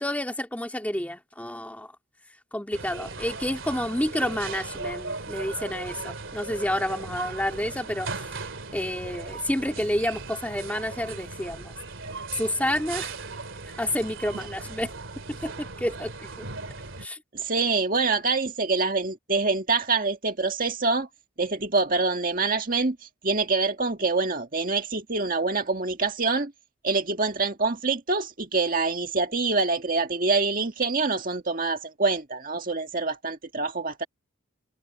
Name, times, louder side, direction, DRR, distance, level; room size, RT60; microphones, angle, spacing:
voice 1, 0.0-1.9 2.5-8.3 8.7-11.7 12.3-13.1 13.8-14.9 15.3-16.5 17.0-17.2, left 1 dB, 5° left, 2.1 m, -29 dB
sound 1, 2.7-17.1, right 3 dB, 70° right, 2.7 m, -37 dB
voice 2, 17.3-21.1 21.4-23.0 23.2-26.5 26.8-34.1, right 3 dB, 40° right, 1.9 m, -25 dB
open air
head